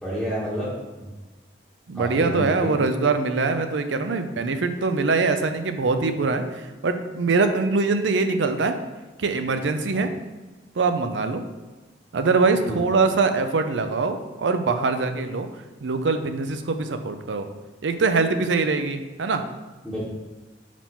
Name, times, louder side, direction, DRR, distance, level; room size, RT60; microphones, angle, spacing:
voice 1, 0.0-0.7 1.0-1.1 1.9-2.7 9.9-10.1 12.6-12.8 19.8-20.1, equal, ahead, -11 dB, 1.2 m, -29 dB
voice 2, 1.9-6.4 6.8-8.8 9.2-10.1 10.8-11.4 12.1-15.5 15.8-17.5 17.8-19.4, right 4 dB, 80° right, 8 dB, 0.5 m, -23 dB
5.0 x 3.6 x 5.5 m, 1.2 s
head